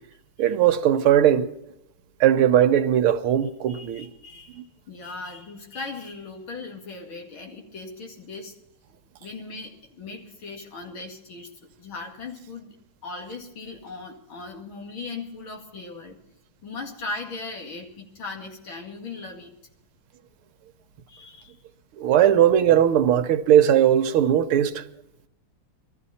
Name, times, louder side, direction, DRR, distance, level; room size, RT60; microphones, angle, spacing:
voice 1, 0.4-1.5 2.2-4.1 22.0-24.8, right 10 dB, 85° right, 1.8 m, -19 dB
voice 2, 3.7-8.5 9.2-11.5 11.8-12.8 13.0-16.2 16.6-19.5 21.1-21.5, left 3 dB, 70° left, 3.0 m, -38 dB
20.5 x 14.0 x 4.2 m
omnidirectional pair, 2.3 m